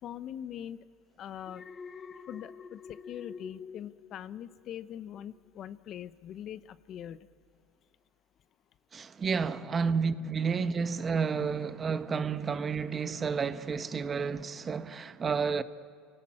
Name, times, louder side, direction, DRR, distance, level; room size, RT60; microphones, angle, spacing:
voice 1, 0.0-0.9 1.2-1.7 2.3-7.2, left 10 dB, 50° left, 0.8 m, -42 dB
Alarm, 1.4-4.8 5.1-5.5, left 5 dB, 30° left, 1.1 m, -47 dB
voice 2, 8.9-15.6, right 5 dB, 30° right, 1.1 m, -31 dB
29.5 x 18.5 x 8.8 m
supercardioid pair, 100°, 0 cm